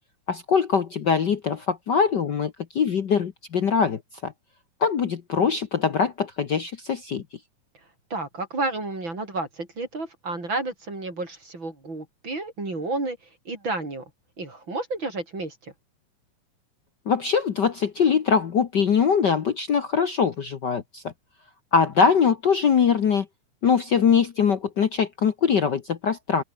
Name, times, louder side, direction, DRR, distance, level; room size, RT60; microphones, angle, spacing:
voice 1, 0.3-4.3 4.8-7.2 17.1-21.1 21.7-23.3 23.6-26.4, left 6 dB, 75° left, 1.0 m, -22 dB
voice 2, 8.1-13.2 13.5-14.1 14.4-15.7, right 2 dB, 35° right, 7.2 m, -31 dB
open air
omnidirectional pair, 3.8 m